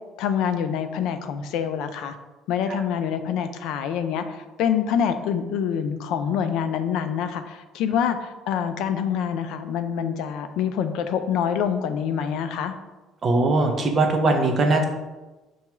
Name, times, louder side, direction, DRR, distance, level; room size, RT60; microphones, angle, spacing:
voice 1, 0.2-2.2 2.5-12.7, left 8 dB, 75° left, 9 dB, 0.3 m, -26 dB
voice 2, 13.2-14.8, right 2 dB, 30° right, 3 dB, 0.5 m, -20 dB
5.6 x 2.3 x 3.0 m, 1.1 s
cardioid pair, 160°, 0 cm